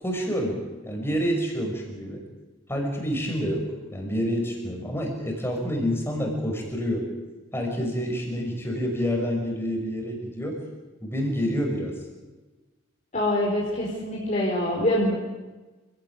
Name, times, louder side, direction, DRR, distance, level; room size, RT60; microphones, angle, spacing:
voice 1, 0.0-2.2 2.7-7.1 7.5-10.6 11.0-12.0, equal, 10° left, 1 dB, 6.1 m, -28 dB
voice 2, 13.1-15.1, left 1 dB, 35° left, -3 dB, 4.7 m, -24 dB
29.0 x 17.0 x 9.6 m, 1.2 s
head